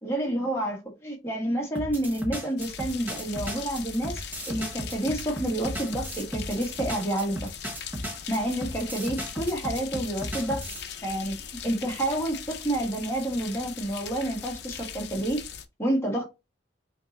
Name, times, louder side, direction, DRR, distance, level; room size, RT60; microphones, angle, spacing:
voice 1, 0.0-7.5 8.3-10.6 11.0-11.3 11.6-15.4 15.8-16.3, right 1 dB, 15° left, 1.4 m, -29 dB
sound 1, 1.8-10.9, equal, 10° right, 0.8 m, -35 dB
sound 2, 2.6-15.6, left 8 dB, 55° left, 0.6 m, -40 dB
5.7 x 2.9 x 2.9 m
head